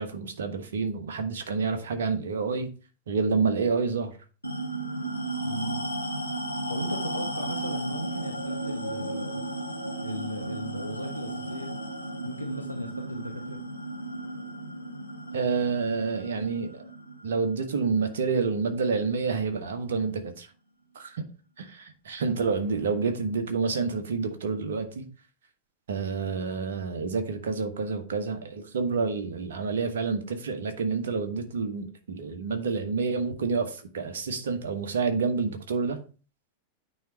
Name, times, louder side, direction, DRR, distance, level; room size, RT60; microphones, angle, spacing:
voice 1, 0.0-2.7 3.1-4.1 15.3-16.9 17.2-20.5 20.9-21.2 21.6-25.0 25.9-36.0, right 4 dB, 65° right, 1.1 m, -28 dB
sound 1, 4.4-19.3, right 1 dB, 90° left, 0.9 m, -35 dB
voice 2, 5.4-5.8 6.7-9.4 10.0-11.7 12.2-13.6, right 1 dB, 85° right, 0.8 m, -36 dB
9.2 x 3.3 x 4.4 m
figure-of-eight pair, 90°, 0 cm